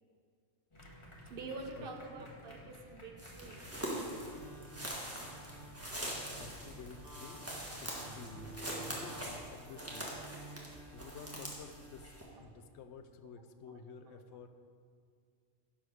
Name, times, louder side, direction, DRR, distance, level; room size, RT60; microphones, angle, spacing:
sound 1, 0.7-8.8, equal, 25° left, 1.5 m, -54 dB
voice 1, 1.3-4.2 8.6-8.7 12.4-12.5 13.2-13.3 13.7-14.2, right 3 dB, 50° right, 4 dB, 1.0 m, -48 dB
sound 2, 3.2-12.2, right 1 dB, 10° right, 1.4 m, -43 dB
sound 3, 4.0-12.2, right 2 dB, 30° right, 1.6 m, -54 dB
voice 2, 6.4-7.5 7.8-8.6 8.9-10.1 10.9-12.1 12.4-14.6, left 5 dB, 65° left, 9 dB, 0.9 m, -51 dB
10.0 x 4.9 x 6.2 m, 2.1 s
omnidirectional pair, 1.3 m